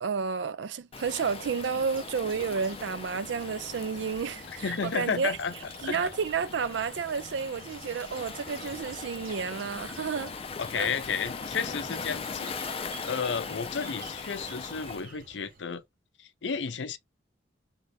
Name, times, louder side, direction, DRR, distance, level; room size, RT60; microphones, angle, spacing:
voice 1, 0.0-5.4 5.8-10.3 10.8-10.9, right 5 dB, 85° right, 0.4 m, -31 dB
Waves surf, 0.9-15.1, left 5 dB, 30° left, 0.4 m, -40 dB
sound 1, 0.9-15.8, right 4 dB, 55° right, 1.1 m, -50 dB
voice 2, 4.6-5.5 5.8-6.1 10.6-15.8 16.2-17.0, left 6 dB, 90° left, 0.6 m, -32 dB
3.6 x 2.6 x 3.3 m
head